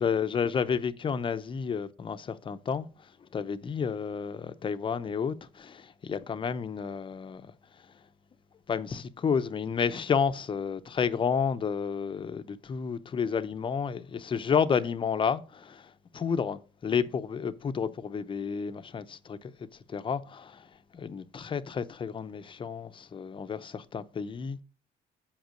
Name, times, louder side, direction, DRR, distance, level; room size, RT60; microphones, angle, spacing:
voice 1, 0.0-2.9 3.3-7.5 8.7-19.5 19.9-20.7 20.9-24.6, left 6 dB, 30° left, 0.6 m, -31 dB
7.2 x 5.2 x 5.0 m
cardioid pair, 110°, 17 cm